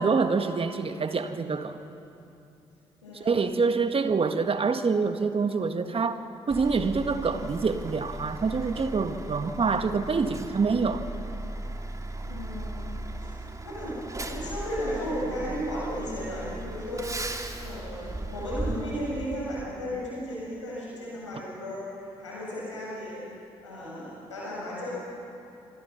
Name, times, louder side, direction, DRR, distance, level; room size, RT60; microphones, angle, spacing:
voice 1, 0.0-1.8 3.1-6.2 6.5-11.1, right 4 dB, 40° right, 1.7 m, -26 dB
voice 2, 3.0-3.6 12.2-12.8 13.2-14.0 14.2-17.2 17.6-23.2 23.6-24.9, equal, 90° left, 6.9 m, -35 dB
Truck, 6.5-19.6, right 1 dB, 20° right, 2.8 m, -37 dB
28.0 x 25.5 x 5.9 m
figure-of-eight pair, 40°, 15 cm